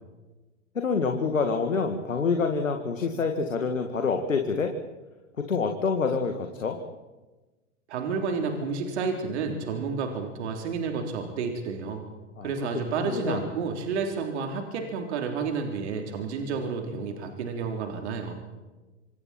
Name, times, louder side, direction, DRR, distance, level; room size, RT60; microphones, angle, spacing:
voice 1, 0.8-4.7 5.4-6.8 12.4-12.5 13.0-13.4, left 5 dB, 80° left, 5 dB, 2.1 m, -27 dB
voice 2, 7.9-12.0 12.4-18.4, right 5 dB, 60° right, 3 dB, 3.7 m, -30 dB
27.0 x 26.5 x 4.5 m, 1.2 s
figure-of-eight pair, 100°, 38 cm